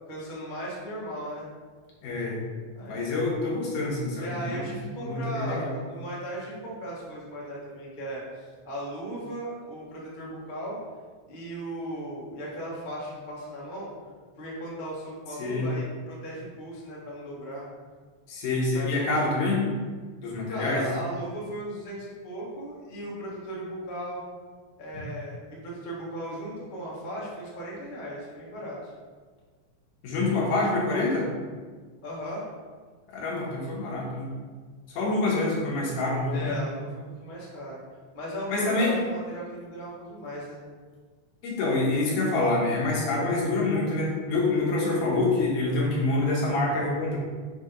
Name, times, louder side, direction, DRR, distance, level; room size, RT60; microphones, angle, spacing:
voice 1, 0.1-1.5 2.7-3.0 4.2-10.8 11.3-13.9 14.4-17.7 18.7-19.1 20.4-24.2 24.8-28.9 32.0-32.5 36.3-37.8 38.1-40.6, right 1 dB, 55° left, -5 dB, 0.5 m, -37 dB
voice 2, 2.0-2.4 2.8-4.8 5.0-5.7 15.4-15.7 18.3-19.6 20.2-20.9 30.0-31.3 33.1-34.3 35.0-36.6 38.5-39.0 41.4-47.2, left 2 dB, 90° left, -4 dB, 2.9 m, -26 dB
6.8 x 2.9 x 5.2 m, 1.5 s
omnidirectional pair, 3.5 m